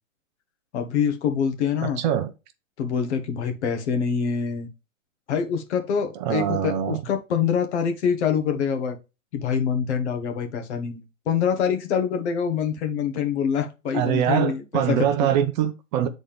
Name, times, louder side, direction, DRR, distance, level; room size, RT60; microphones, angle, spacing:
voice 1, 0.7-2.0 2.8-4.7 5.3-9.0 9.3-15.0, left 7 dB, 55° left, 1.6 m, -25 dB
voice 2, 1.8-2.3 6.2-7.0 13.9-16.1, right 10 dB, 35° right, 0.7 m, -23 dB
8.7 x 4.1 x 3.5 m
hypercardioid pair, 125°, 41 cm